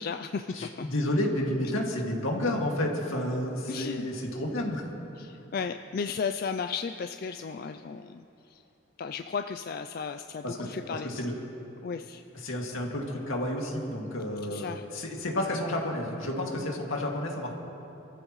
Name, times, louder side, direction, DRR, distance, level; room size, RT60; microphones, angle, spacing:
voice 1, 0.0-0.9 3.7-4.1 5.2-8.6 9.0-11.3 11.8-12.5 14.5-14.8, left 5 dB, 45° left, 7 dB, 0.3 m, -35 dB
voice 2, 0.5-4.8 10.4-11.3 12.4-17.6, left 1 dB, 80° left, -1 dB, 2.2 m, -31 dB
27.0 x 14.0 x 3.1 m, 2.9 s
head